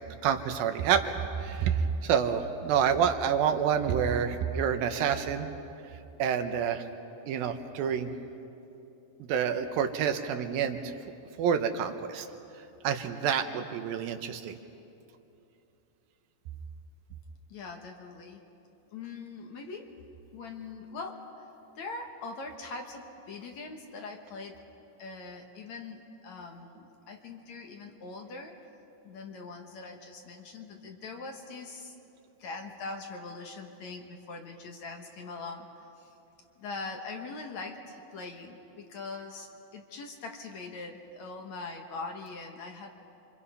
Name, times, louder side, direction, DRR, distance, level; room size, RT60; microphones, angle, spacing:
voice 1, 0.2-5.5 6.2-6.8 7.3-8.1 9.2-10.9 11.4-12.3 12.8-14.6, right 7 dB, 80° right, 7 dB, 2.8 m, -28 dB
voice 2, 17.5-18.4 18.9-19.9 20.3-21.5 21.8-24.6 25.0-28.6 29.0-32.0 32.4-36.1 36.6-42.9, left 3 dB, 60° left, 3 dB, 2.3 m, -42 dB
29.5 x 25.0 x 5.7 m, 2.8 s
omnidirectional pair, 4.2 m